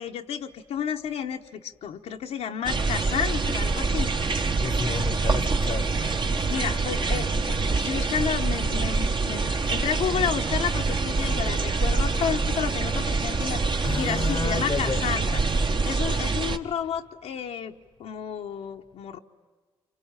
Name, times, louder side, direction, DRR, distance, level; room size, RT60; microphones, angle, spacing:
voice 1, 0.0-4.1 6.3-15.4 15.8-17.7 18.0-19.2, left 8 dB, 85° left, 1.1 m, -31 dB
sound 1, 2.7-16.6, right 3 dB, 45° right, 1.3 m, -25 dB
voice 2, 4.6-5.9 13.5-15.1, left 5 dB, 50° left, 0.9 m, -32 dB
27.0 x 24.5 x 8.9 m
cardioid pair, 60°, 11 cm